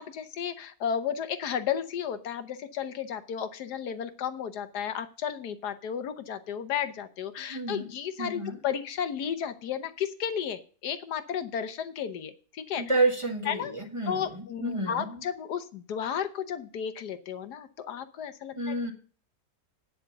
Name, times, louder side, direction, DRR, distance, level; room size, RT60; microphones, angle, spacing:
voice 1, 0.0-12.9 13.5-13.7 14.1-18.7, left 8 dB, 70° left, 10 dB, 1.5 m, -33 dB
voice 2, 7.5-7.9 8.2-8.6 12.8-15.2 18.5-18.9, right 2 dB, 20° right, 1 dB, 1.7 m, -30 dB
9.4 x 6.9 x 6.5 m, 0.39 s
omnidirectional pair, 1.8 m